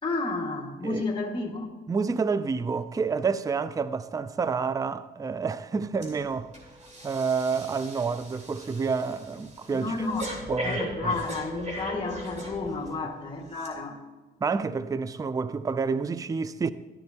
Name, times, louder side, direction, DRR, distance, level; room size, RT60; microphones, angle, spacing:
voice 1, 0.0-1.7 9.7-14.0, left 3 dB, 25° left, 2.0 m, -31 dB
voice 2, 1.9-6.5 7.0-9.9 10.5-11.1 14.4-16.7, right 5 dB, 15° right, 0.4 m, -29 dB
Breathing, 6.0-6.2 6.5-13.0 13.5-13.7, equal, 35° right, 3.0 m, -38 dB
13.0 x 10.5 x 2.9 m
cardioid pair, 90°, 20 cm